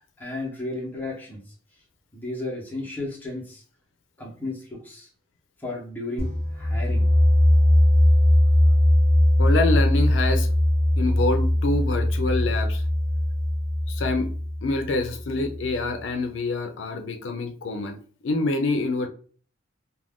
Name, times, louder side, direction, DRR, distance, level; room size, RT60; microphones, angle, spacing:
voice 1, 0.0-1.5 2.1-3.6 4.2-5.1 5.6-7.1, left 2 dB, 10° left, -3 dB, 0.8 m, -34 dB
sound 1, 6.2-15.8, left 1 dB, 50° right, 1.1 m, -20 dB
voice 2, 9.4-10.5 11.0-12.8 13.9-14.3 14.6-19.1, left 2 dB, 70° left, 5 dB, 0.5 m, -26 dB
2.4 x 2.2 x 3.5 m, 0.42 s
head